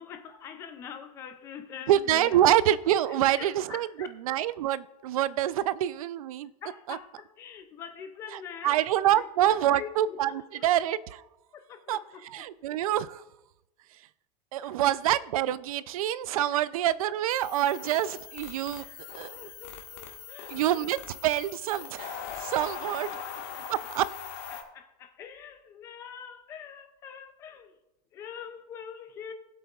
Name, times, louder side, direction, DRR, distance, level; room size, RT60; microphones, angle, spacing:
voice 1, 0.0-2.5 3.0-4.1 6.6-8.8 9.1-10.7 11.5-12.5 14.6-14.8 16.5-16.6 18.8-21.1 22.6-23.7 24.5-27.8 28.1-29.3, left 8 dB, 15° left, 0.3 m, -45 dB
voice 2, 1.9-3.9 4.3-6.5 6.9-7.0 8.6-10.3 10.6-11.2 11.9-12.0 12.3-13.2 14.5-18.8 19.1-19.4 20.5-23.1 23.7-24.0, right 12 dB, 60° right, 0.4 m, -26 dB
sound 1, 17.3-24.6, left 7 dB, 45° left, 1.5 m, -41 dB
19.0 x 8.3 x 2.3 m
supercardioid pair, 180°, 20 cm